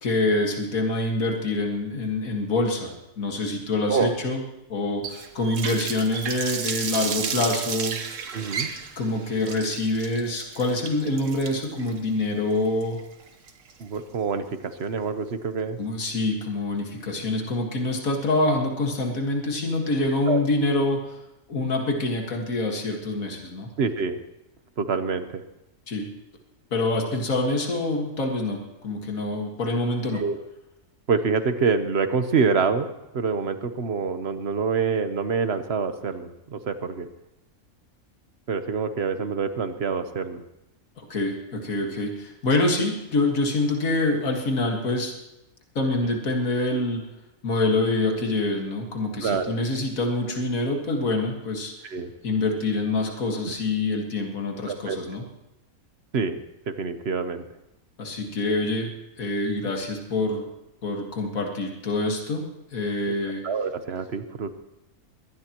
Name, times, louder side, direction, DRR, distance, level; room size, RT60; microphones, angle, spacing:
voice 1, 0.0-4.4 4.7-8.0 9.0-13.0 15.8-21.2 21.5-23.7 25.9-26.1 26.7-30.2 41.1-45.1 45.8-47.0 47.4-51.7 52.2-55.2 58.0-58.9 59.2-60.5 60.8-63.4, left 2 dB, 80° left, 1 dB, 2.3 m, -26 dB
Water tap faucet, 5.0-14.0, right 6 dB, 65° right, 1.5 m, -33 dB
voice 2, 8.3-8.7 13.8-15.8 20.3-20.4 23.8-24.2 24.8-25.4 30.1-30.4 31.1-37.1 38.5-40.4 49.2-49.6 51.8-52.1 53.4-53.5 54.7-55.0 56.1-57.4 63.4-64.5, right 5 dB, 50° right, 9 dB, 1.2 m, -26 dB
23.0 x 18.5 x 3.0 m, 0.92 s
omnidirectional pair, 1.4 m